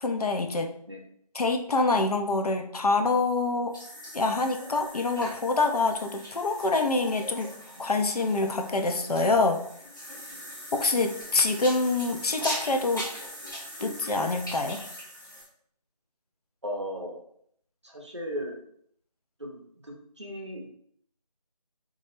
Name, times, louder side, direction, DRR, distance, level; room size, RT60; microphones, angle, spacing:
voice 1, 0.0-0.7 1.3-3.8 4.1-7.5 7.8-9.6 10.7-13.1 13.8-14.9, left 3 dB, 70° left, 5 dB, 0.4 m, -26 dB
sound 1, 3.7-15.5, equal, 30° left, 0.6 m, -40 dB
voice 2, 16.6-17.2 17.8-18.6 19.4-20.7, equal, 45° right, 0 dB, 0.5 m, -36 dB
2.2 x 2.0 x 2.9 m, 0.65 s
figure-of-eight pair, 180°, 20 cm